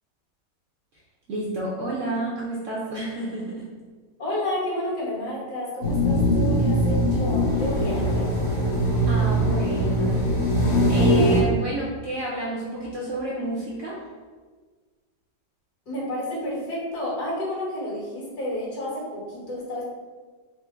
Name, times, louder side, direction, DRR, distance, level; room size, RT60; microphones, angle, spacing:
voice 1, 1.3-3.7 9.1-10.3 10.9-14.0, right 1 dB, 60° right, -6 dB, 0.9 m, -30 dB
voice 2, 4.2-8.5 15.9-19.8, left 1 dB, 60° left, -6 dB, 1.8 m, -31 dB
sound 1, 5.8-11.4, equal, 45° left, 0.8 m, -21 dB
4.4 x 2.0 x 4.4 m, 1.4 s
omnidirectional pair, 1.9 m